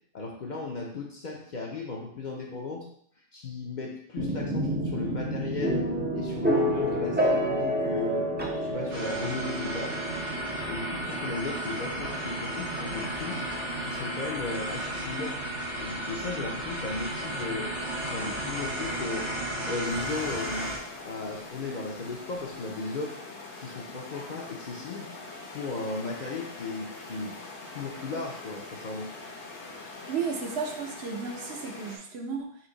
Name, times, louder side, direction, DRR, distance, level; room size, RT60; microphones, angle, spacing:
voice 1, 0.1-2.9 3.3-5.8 6.1-8.3 8.6-10.0 10.7-13.4 13.8-15.4 15.8-17.7 18.1-19.3 19.7-20.7 21.0-23.1 23.6-25.1 25.5-27.4 27.7-29.1, left 3 dB, 50° left, -1 dB, 0.6 m, -36 dB
sound 1, 4.2-17.9, equal, 15° right, 0.3 m, -31 dB
sound 2, 8.9-20.8, right 1 dB, 85° right, 1.6 m, -34 dB
sound 3, 19.8-32.0, left 3 dB, 70° left, 1.2 m, -43 dB
voice 2, 30.1-32.6, right 5 dB, 65° right, 2 dB, 0.9 m, -33 dB
4.4 x 2.7 x 3.9 m, 0.66 s
omnidirectional pair, 1.2 m